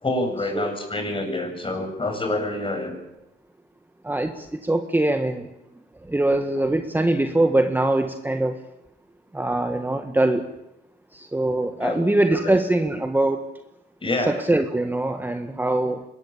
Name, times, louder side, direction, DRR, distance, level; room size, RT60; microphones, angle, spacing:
voice 1, 0.0-3.0 11.8-12.0 12.4-12.6 14.0-14.4, left 2 dB, 25° left, 4 dB, 7.7 m, -27 dB
voice 2, 4.0-5.5 6.0-8.6 9.3-10.5 11.1-13.4 14.3-16.0, right 1 dB, 10° right, 6 dB, 1.7 m, -22 dB
24.5 x 21.0 x 8.9 m, 0.90 s
cardioid pair, 90°, 20 cm